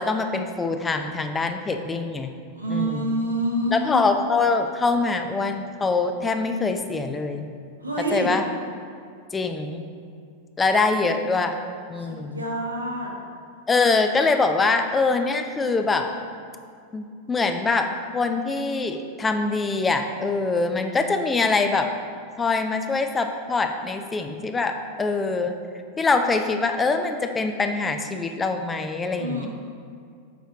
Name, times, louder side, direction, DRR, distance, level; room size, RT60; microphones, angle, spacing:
voice 1, 0.0-2.3 2.7-3.2 3.7-7.5 8.1-8.4 9.3-9.8 10.6-11.5 11.9-12.4 13.7-16.1 16.9-21.9 22.4-25.6 26.0-29.5, left 3 dB, 15° left, 6 dB, 0.5 m, -24 dB
voice 2, 2.5-4.1 7.8-8.3 12.0-13.1 29.1-29.5, right 1 dB, 80° right, -2 dB, 1.2 m, -27 dB
7.1 x 4.4 x 4.8 m, 2.3 s
figure-of-eight pair, 90°, 0 cm